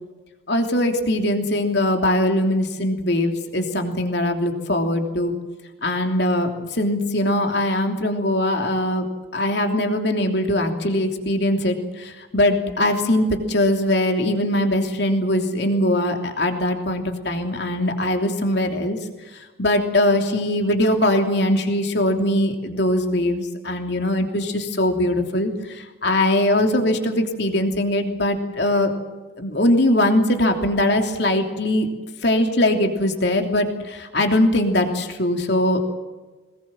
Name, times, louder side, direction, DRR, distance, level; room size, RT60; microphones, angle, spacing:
voice 1, 0.5-5.3 5.8-9.0 9.3-19.0 19.6-28.9 29.4-31.9 32.2-35.8, left 1 dB, 55° left, 4 dB, 3.1 m, -21 dB
22.5 x 20.0 x 7.5 m, 1.3 s
head